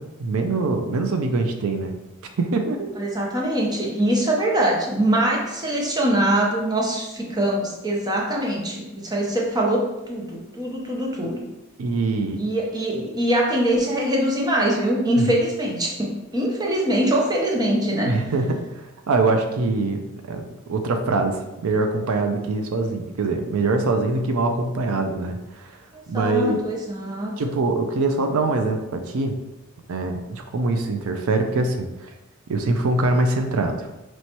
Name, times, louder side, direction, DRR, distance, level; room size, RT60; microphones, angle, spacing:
voice 1, 0.0-1.9 2.4-2.9 11.8-12.4 15.2-15.3 18.1-18.8 19.1-20.0 20.3-25.7 26.1-26.7 27.4-29.4 29.9-32.1 32.5-33.9, right 3 dB, 90° right, 5 dB, 0.4 m, -23 dB
voice 2, 3.0-9.8 10.1-11.4 12.4-18.1 26.1-27.3, right 1 dB, 20° right, -2 dB, 0.7 m, -23 dB
4.5 x 3.1 x 2.9 m, 0.98 s
head